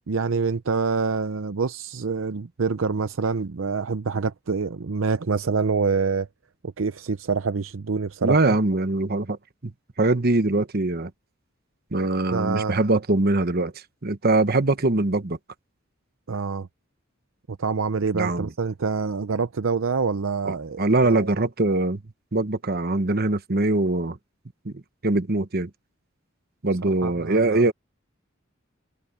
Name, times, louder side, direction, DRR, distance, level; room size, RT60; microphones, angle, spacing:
voice 1, 0.1-6.3 6.6-8.6 12.3-12.7 16.3-16.7 17.5-20.8 21.1-21.3 26.8-27.7, right 5 dB, 70° right, 0.6 m, -26 dB
voice 2, 8.2-9.7 10.0-11.1 11.9-13.7 14.0-15.4 18.1-18.5 20.5-22.0 22.3-24.2 24.6-25.7 26.6-27.7, right 2 dB, 50° right, 1.2 m, -22 dB
head